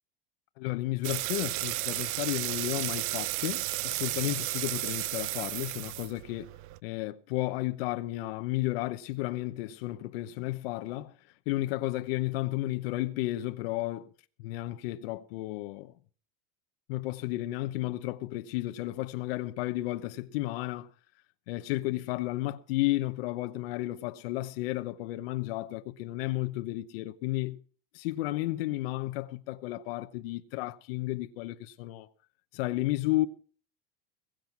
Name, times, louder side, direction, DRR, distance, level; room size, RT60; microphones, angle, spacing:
voice 1, 0.6-6.5 6.8-11.1 11.5-14.1 14.4-15.9 16.9-20.9 21.5-27.6 27.9-32.1 32.5-33.3, left 17 dB, 75° left, 1.0 m, -33 dB
sound 1, 1.0-6.8, right 18 dB, 50° right, 0.6 m, -33 dB
21.5 x 7.8 x 5.9 m
supercardioid pair, 145°, 30 cm